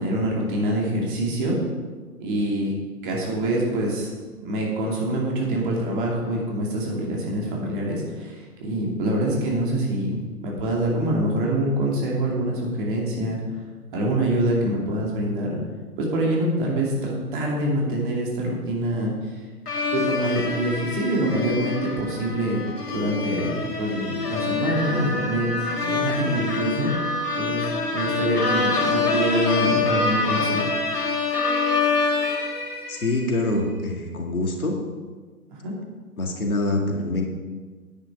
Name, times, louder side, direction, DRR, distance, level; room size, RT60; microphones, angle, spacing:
voice 1, 0.0-1.6 2.2-2.7 3.0-4.1 4.4-8.4 8.6-13.4 13.9-15.6 16.0-19.1 19.9-22.6 22.9-26.9 27.4-30.7 35.6-35.7, right 1 dB, 35° right, -2 dB, 2.6 m, -25 dB
sound 1, 19.7-33.3, left 4 dB, 80° left, 1.9 m, -26 dB
voice 2, 32.9-34.8 36.2-37.3, left 2 dB, 65° left, 1 dB, 2.1 m, -25 dB
9.7 x 8.9 x 4.9 m, 1.4 s
figure-of-eight pair, 130°, 46 cm